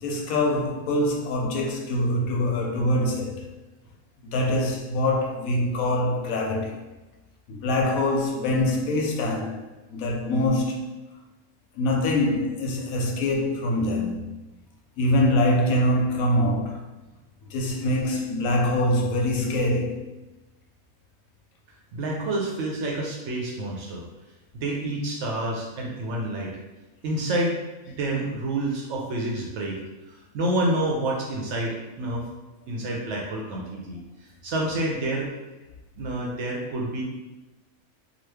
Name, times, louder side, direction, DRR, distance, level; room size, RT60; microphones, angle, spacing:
voice 1, 0.0-3.4 4.2-6.7 7.5-9.6 9.9-10.9 11.8-14.3 15.0-16.8 17.5-20.0, left 1 dB, 80° left, 1.1 m, -24 dB
voice 2, 21.9-24.0 24.5-26.6 27.0-27.6 27.9-29.8 30.1-32.3 32.7-35.3 36.0-37.0, right 1 dB, 65° right, 0.8 m, -28 dB
2.9 x 2.2 x 3.3 m
omnidirectional pair, 1.5 m